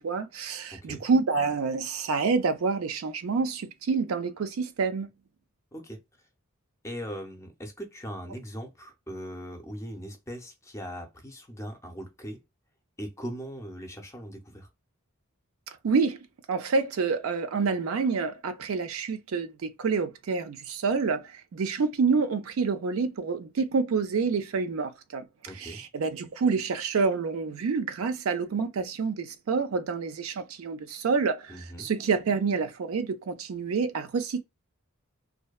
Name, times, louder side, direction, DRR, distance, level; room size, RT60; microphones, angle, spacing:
voice 1, 0.0-5.1 15.8-16.2 16.5-25.3 25.6-31.5 31.8-34.4, right 4 dB, 75° right, 0.4 m, -28 dB
voice 2, 0.7-1.0 5.7-6.0 6.8-12.4 13.0-14.7 25.5-25.8 31.5-31.9, equal, 15° left, 0.5 m, -40 dB
2.6 x 2.1 x 2.2 m
head